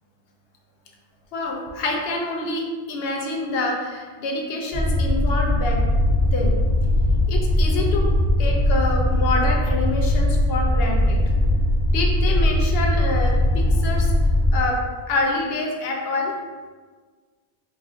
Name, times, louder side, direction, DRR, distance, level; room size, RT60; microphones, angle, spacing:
voice 1, 1.3-5.8 6.3-6.6 7.3-8.1 8.4-11.2 11.9-14.1 14.5-14.8 15.1-16.3, left 2 dB, 65° left, 0 dB, 0.8 m, -26 dB
sound 1, 4.7-14.6, left 1 dB, 40° left, 0.4 m, -20 dB
3.2 x 2.4 x 3.6 m, 1.5 s
omnidirectional pair, 1.2 m